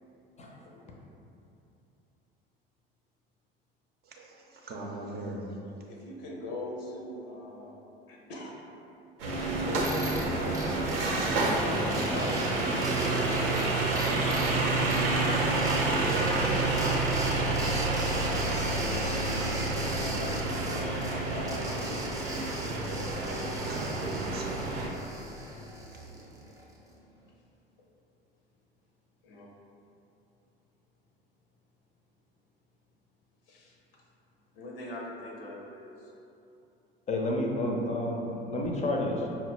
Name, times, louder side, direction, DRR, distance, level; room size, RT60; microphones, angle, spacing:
voice 1, 0.4-0.8 37.1-38.2 38.4-39.3, left 1 dB, 25° left, 0 dB, 0.6 m, -30 dB
voice 2, 4.0-5.9 23.0-26.1, right 2 dB, 30° right, -1 dB, 0.6 m, -42 dB
voice 3, 5.9-7.8 8.1-8.6 9.3-10.6 11.4-14.5 15.2-16.1 16.9-17.8 18.5-22.1 25.3-25.5 26.1-26.2 29.2-29.5 33.5-34.0 34.5-36.1, left 1 dB, 70° left, -1 dB, 0.7 m, -42 dB
sound 1, 9.2-24.9, right 2 dB, 75° right, 0.7 m, -28 dB
sound 2, 9.8-26.8, right 2 dB, 10° right, 0.9 m, -42 dB
5.5 x 2.1 x 3.1 m, 2.8 s
figure-of-eight pair, 70°, 30 cm